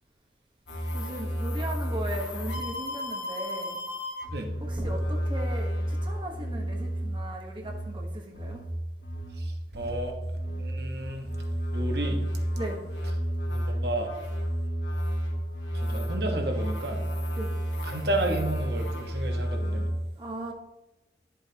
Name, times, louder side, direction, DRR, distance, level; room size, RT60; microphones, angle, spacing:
sound 1, 0.7-19.9, equal, 85° left, 2.0 m, -31 dB
voice 1, 0.9-3.8 4.6-8.6 12.5-12.8 17.4-17.5 20.2-20.5, right 1 dB, 25° right, 1 dB, 1.2 m, -37 dB
voice 2, 9.4-10.1 10.6-11.3 11.7-12.2 13.5-14.1 15.7-17.0 17.8-19.8, right 1 dB, 60° right, 3 dB, 1.3 m, -32 dB
11.5 x 7.5 x 2.9 m, 1.0 s
head